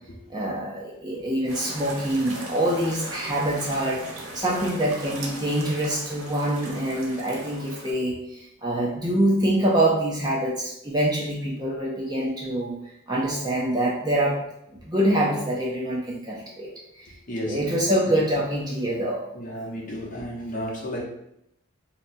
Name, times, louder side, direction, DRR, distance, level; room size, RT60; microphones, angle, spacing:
voice 1, 0.3-4.0 4.3-12.7 13.1-14.4 14.8-16.7 17.0-17.1 17.5-19.2, right 1 dB, 20° right, -3 dB, 0.5 m, -25 dB
sound 1, 1.5-7.9, right 1 dB, 85° right, 0.8 m, -38 dB
voice 2, 17.3-17.7 19.3-21.0, equal, 40° left, -4 dB, 0.7 m, -32 dB
2.7 x 2.2 x 4.0 m, 0.80 s
head